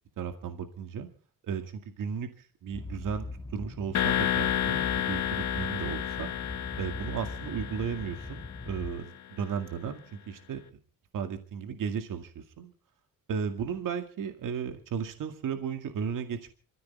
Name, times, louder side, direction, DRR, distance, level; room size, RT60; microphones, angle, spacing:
voice 1, 0.2-1.1 1.4-2.3 2.6-3.3 3.5-6.3 6.7-10.6 11.1-12.7 13.3-16.5, right 7 dB, 65° right, 7 dB, 2.2 m, -35 dB
sound 1, 2.7-8.9, left 2 dB, 10° left, 1.4 m, -41 dB
sound 2, 3.9-8.9, left 11 dB, 55° left, 1.5 m, -31 dB
27.0 x 15.0 x 3.4 m, 0.38 s
cardioid pair, 155°, 34 cm